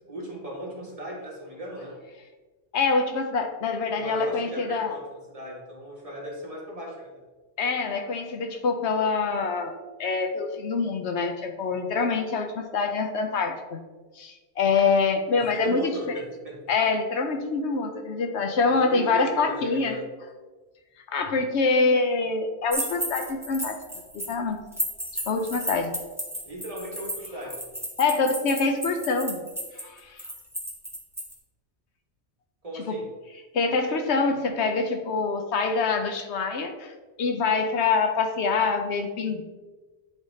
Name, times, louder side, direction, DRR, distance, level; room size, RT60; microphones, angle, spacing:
voice 1, 0.1-2.0 3.9-7.2 15.3-16.6 18.7-20.0 26.4-27.5 32.6-33.0, right 1 dB, 30° right, -3 dB, 1.4 m, -37 dB
voice 2, 2.7-5.0 7.6-13.8 14.2-16.2 16.7-20.0 21.1-23.8 24.1-24.6 25.1-26.0 28.0-29.4 29.8-30.2 32.9-33.0 33.5-39.4, left 4 dB, 75° left, 5 dB, 0.9 m, -25 dB
sound 1, 22.7-24.3 24.7-31.3, equal, 5° right, 0.8 m, -33 dB
10.5 x 3.6 x 2.7 m, 1.3 s
omnidirectional pair, 1.2 m